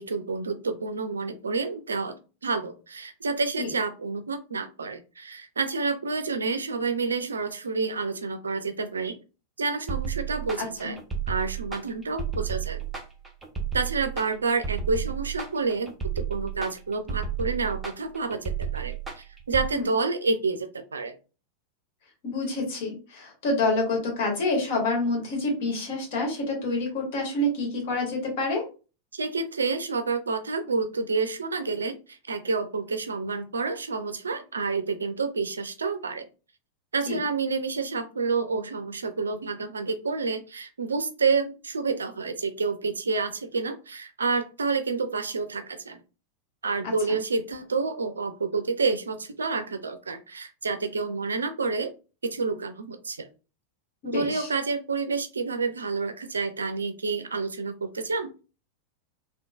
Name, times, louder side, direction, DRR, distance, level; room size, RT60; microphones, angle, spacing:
voice 1, 0.0-2.2 2.4-9.2 9.6-11.0 11.3-12.8 13.7-21.2 29.1-36.3 36.9-46.0 46.6-51.9 52.2-53.3 54.1-58.3, right 4 dB, 75° right, 9 dB, 0.4 m, -29 dB
sound 1, 9.9-19.7, right 7 dB, 10° right, 0.9 m, -32 dB
voice 2, 10.6-10.9 19.7-19.9 22.2-28.6 37.1-37.2 46.8-47.2 54.0-54.5, left 2 dB, 50° left, 0 dB, 1.6 m, -28 dB
3.6 x 2.4 x 2.4 m, 0.33 s
figure-of-eight pair, 90°, 0 cm